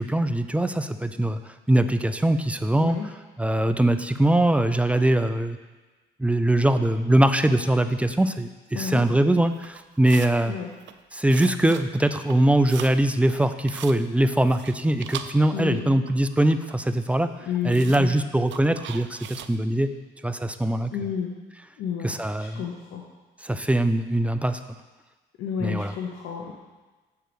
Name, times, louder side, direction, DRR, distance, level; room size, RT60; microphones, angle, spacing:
voice 1, 0.0-1.4 1.7-3.0 3.4-5.6 6.2-10.5 11.1-17.3 17.6-19.9 20.2-20.9 22.0-22.6 23.4-24.6 25.6-25.9, right 1 dB, 5° right, 10 dB, 0.4 m, -22 dB
sound 1, 9.6-10.4 10.7-11.0 11.3-11.9 12.1-13.0 13.3-14.0 14.4-16.8 17.1-17.2 17.7-18.1 18.5-19.6, right 10 dB, 70° right, 0.5 m, -40 dB
voice 2, 15.5-16.0 17.5-18.1 20.9-21.3 21.8-23.0 25.4-26.5, left 8 dB, 85° left, -1 dB, 1.0 m, -31 dB
7.4 x 4.7 x 6.9 m, 1.2 s
cardioid pair, 90°, 20 cm